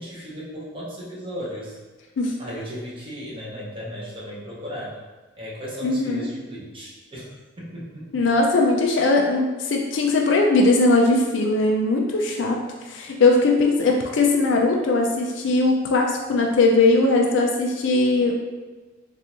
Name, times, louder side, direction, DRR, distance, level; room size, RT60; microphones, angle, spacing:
voice 1, 0.0-1.8 2.4-4.9 5.4-7.3 7.6-8.3, equal, 25° right, -6 dB, 0.8 m, -35 dB
voice 2, 5.8-6.2 8.1-12.6 12.8-18.3, left 2 dB, 65° left, 1 dB, 0.4 m, -19 dB
3.6 x 2.4 x 2.8 m, 1.3 s
head